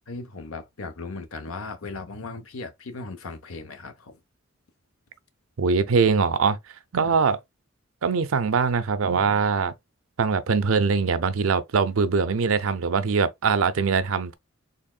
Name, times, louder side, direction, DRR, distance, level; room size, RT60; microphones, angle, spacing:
voice 1, 0.1-4.2 7.0-7.2, left 3 dB, 90° left, 0.8 m, -37 dB
voice 2, 5.6-6.6 6.9-7.4 8.0-9.7 10.2-14.4, right 5 dB, 75° right, 0.5 m, -22 dB
4.0 x 3.5 x 2.2 m
head